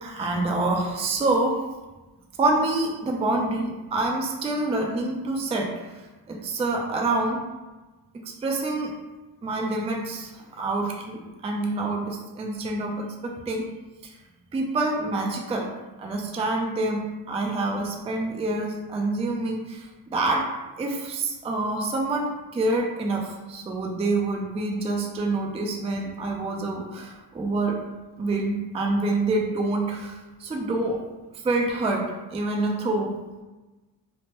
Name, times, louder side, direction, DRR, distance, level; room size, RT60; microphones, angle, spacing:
voice 1, 0.0-1.6 2.4-5.7 6.3-7.4 8.3-8.9 9.4-13.6 14.0-14.1 14.5-15.7 16.0-20.5 20.8-27.8 28.2-31.0 31.4-32.1 32.3-33.1, right 2 dB, 15° right, 1 dB, 0.3 m, -27 dB
3.2 x 2.1 x 2.8 m, 1.2 s
cardioid pair, 110°, 44 cm